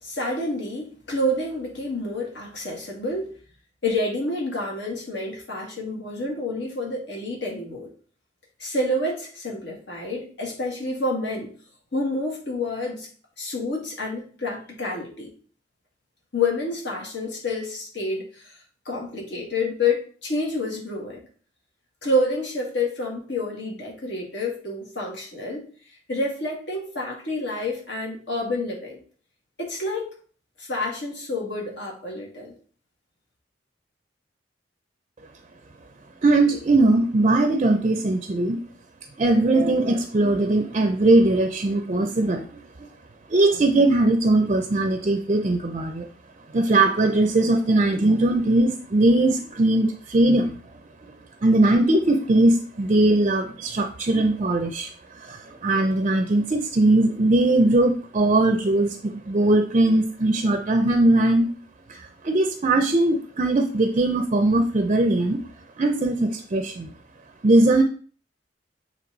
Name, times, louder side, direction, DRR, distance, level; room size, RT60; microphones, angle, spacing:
voice 1, 0.0-3.3 3.8-7.9 8.6-11.5 11.9-13.1 13.4-15.3 16.3-18.6 18.9-21.2 22.0-25.7 26.1-29.0 29.6-30.1 30.6-32.5, left 2 dB, 70° left, -1 dB, 2.0 m, -28 dB
voice 2, 36.2-38.6 39.2-42.6 43.3-46.1 46.5-50.6 51.4-54.9 55.2-61.5 61.9-65.4 65.8-66.9 67.4-67.8, right 2 dB, 35° right, 6 dB, 0.5 m, -20 dB
7.6 x 3.1 x 3.9 m, 0.43 s
head